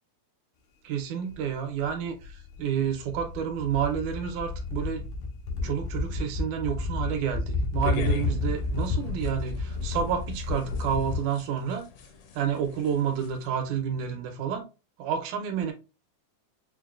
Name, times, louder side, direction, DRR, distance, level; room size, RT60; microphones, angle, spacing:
voice 1, 0.8-5.0 5.6-11.9 12.4-14.6 15.0-15.7, right 8 dB, 85° right, 2.2 m, -29 dB
sound 1, 1.3-1.4 1.8-11.2, left 3 dB, 90° left, 2.3 m, -31 dB
sound 2, 7.8-13.5, left 6 dB, 75° left, 1.6 m, -43 dB
6.1 x 2.2 x 2.3 m
omnidirectional pair, 3.4 m